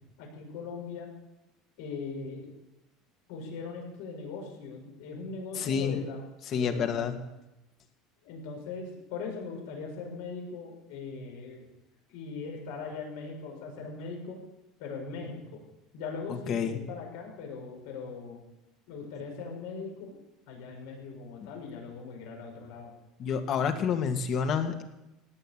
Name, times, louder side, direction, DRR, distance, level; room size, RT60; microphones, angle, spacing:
voice 1, 0.2-1.1 1.8-2.5 3.3-6.2 6.6-7.2 8.2-11.7 12.1-14.4 14.8-15.6 15.9-18.4 18.9-20.2 20.5-22.9, left 4 dB, 85° left, 1 dB, 6.8 m, -40 dB
voice 2, 5.6-6.0 6.5-7.2 16.5-16.8 23.2-24.8, left 6 dB, 45° left, 7 dB, 2.0 m, -28 dB
17.5 x 8.2 x 9.1 m, 0.95 s
supercardioid pair, 130°, 0 cm